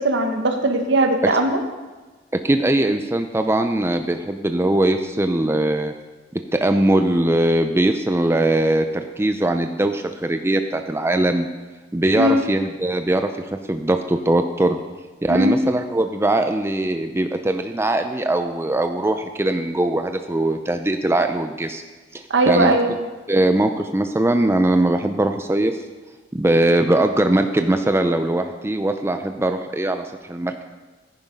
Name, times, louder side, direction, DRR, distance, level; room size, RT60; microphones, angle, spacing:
voice 1, 0.0-1.6 12.2-12.4 15.3-15.5 22.3-22.9, right 1 dB, 65° right, 5 dB, 1.5 m, -19 dB
voice 2, 2.3-5.9 6.3-11.5 11.9-13.3 13.7-14.8 15.2-21.8 22.1-22.8 23.3-25.8 26.3-30.6, right 1 dB, 15° right, 7 dB, 0.6 m, -21 dB
15.5 x 9.7 x 5.4 m, 1.3 s
head